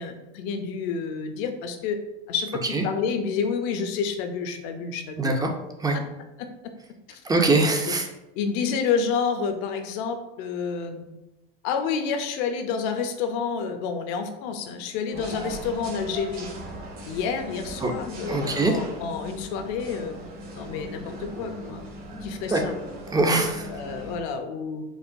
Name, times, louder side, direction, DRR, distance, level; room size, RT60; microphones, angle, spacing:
voice 1, 0.0-2.0 2.3-5.3 7.1-7.2 7.9-8.0 8.4-11.0 11.6-16.5 17.1-20.1 20.5-21.8 22.2-22.7 23.7-24.8, left 6 dB, 65° left, 7 dB, 0.6 m, -29 dB
voice 2, 5.2-5.5 5.8-6.0 7.2-8.1 17.8-17.9 18.3-18.7 22.5-22.6 23.1-23.7, right 2 dB, 15° right, 3 dB, 0.5 m, -22 dB
sound 1, 15.1-24.2, right 1 dB, 50° right, 1.4 m, -38 dB
4.7 x 2.2 x 2.6 m, 0.97 s
supercardioid pair, 105°, 29 cm